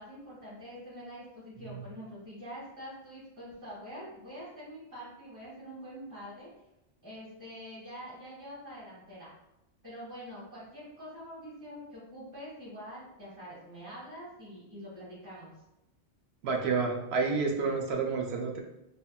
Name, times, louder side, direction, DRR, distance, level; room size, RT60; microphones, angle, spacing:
voice 1, 0.0-6.5 7.0-9.3 9.8-15.5, equal, 15° right, -10 dB, 1.5 m, -45 dB
voice 2, 16.4-18.6, right 4 dB, 70° right, 1 dB, 0.8 m, -30 dB
3.4 x 2.2 x 2.2 m, 0.89 s
omnidirectional pair, 1.2 m